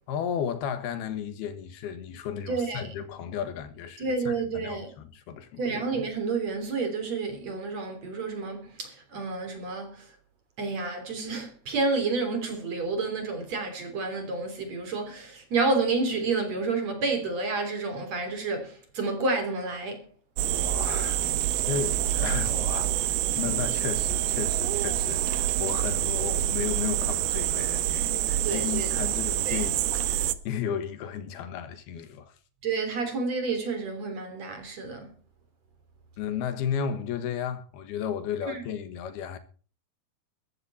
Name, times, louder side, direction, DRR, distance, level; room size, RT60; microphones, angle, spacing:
voice 1, 0.1-5.6 20.5-21.3 21.7-32.3 36.2-39.4, left 8 dB, 80° left, 3.4 m, -34 dB
voice 2, 2.5-2.9 4.0-4.9 5.6-10.1 10.6-20.1 28.4-28.9 29.4-29.6 32.6-35.1 38.5-38.6, right 3 dB, 45° right, 4.4 m, -30 dB
sound 1, 20.4-30.3, right 13 dB, 85° right, 2.9 m, -27 dB
15.0 x 14.5 x 4.2 m
omnidirectional pair, 4.4 m